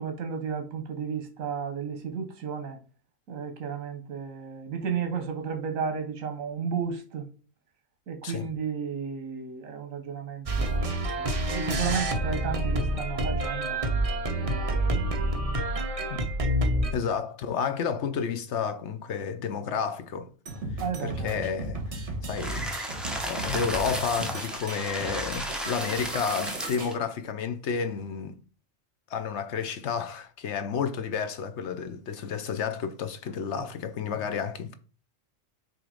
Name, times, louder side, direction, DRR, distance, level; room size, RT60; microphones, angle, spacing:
voice 1, 0.0-2.8 3.3-7.3 8.1-13.8 14.4-15.3 16.8-16.9 20.8-21.3, right 6 dB, 80° right, 1.3 m, -33 dB
sound 1, 10.5-16.9, right 1 dB, 30° right, 0.8 m, -27 dB
voice 2, 16.9-20.3 21.0-21.8 22.2-22.9 23.3-28.4 29.1-34.7, left 6 dB, 65° left, 0.9 m, -31 dB
sound 2, 20.5-26.9, right 2 dB, 60° right, 1.8 m, -36 dB
sound 3, 22.4-26.9, right 1 dB, ahead, 0.8 m, -34 dB
6.2 x 3.1 x 4.9 m
omnidirectional pair, 1.4 m